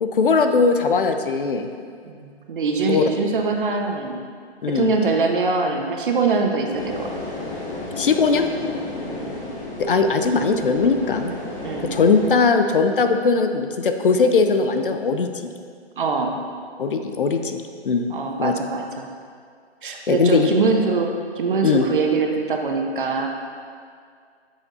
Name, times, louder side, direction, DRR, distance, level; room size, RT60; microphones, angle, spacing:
voice 1, 0.0-1.7 2.9-3.0 4.6-4.9 8.0-8.5 9.8-11.3 11.9-15.5 16.8-18.1 18.4-18.5 20.1-20.5 21.6-21.9, left 4 dB, 55° left, 7 dB, 0.6 m, -19 dB
voice 2, 2.0-4.2 4.7-7.1 9.0-9.4 11.6-11.9 16.0-16.3 18.1-19.1 19.8-23.3, right 4 dB, 50° right, 2 dB, 1.0 m, -23 dB
sound 1, 6.7-12.3, left 2 dB, 30° left, 1.9 m, -32 dB
10.0 x 7.1 x 2.7 m, 2.2 s
hypercardioid pair, 160°, 33 cm